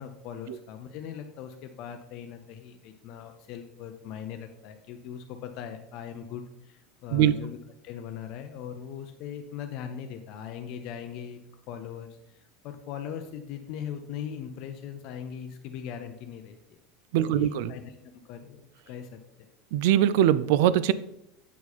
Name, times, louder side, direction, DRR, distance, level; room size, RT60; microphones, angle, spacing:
voice 1, 0.0-7.6 7.8-11.4 11.7-16.8 17.2-19.2, left 8 dB, 45° left, 6 dB, 0.5 m, -40 dB
voice 2, 17.1-17.7 19.7-20.9, right 11 dB, 65° right, 17 dB, 0.4 m, -22 dB
8.0 x 4.7 x 4.2 m, 0.83 s
supercardioid pair, 170°, 0 cm